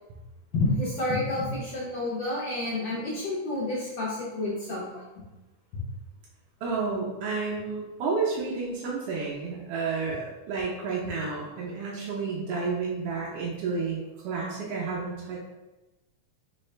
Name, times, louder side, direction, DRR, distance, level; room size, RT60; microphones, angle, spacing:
voice 1, 0.5-5.0, left 2 dB, 75° left, -7 dB, 1.0 m, -29 dB
voice 2, 6.6-15.4, right 4 dB, 75° right, -4 dB, 1.4 m, -31 dB
4.2 x 3.9 x 3.2 m, 1.1 s
omnidirectional pair, 3.4 m